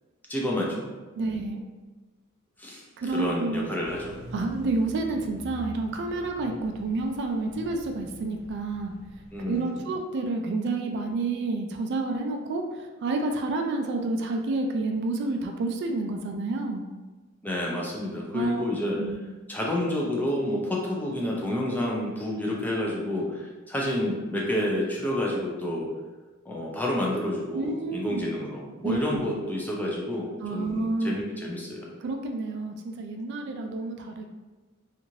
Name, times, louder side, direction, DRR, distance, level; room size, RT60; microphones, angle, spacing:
voice 1, 0.3-1.3 2.6-2.8 3.1-4.1 9.3-9.8 17.4-19.0 19.5-25.9 26.5-31.9, left 1 dB, 10° left, -3 dB, 0.5 m, -29 dB
voice 2, 1.2-1.6 3.0-3.7 4.3-8.9 9.4-16.8 18.3-18.7 19.0-19.2 27.5-28.2 28.8-29.2 30.4-31.2 32.0-34.3, right 3 dB, 55° right, 4 dB, 0.3 m, -29 dB
sound 1, 3.8-9.6, right 1 dB, 25° right, 1.2 m, -46 dB
3.0 x 2.5 x 2.7 m, 1.2 s
head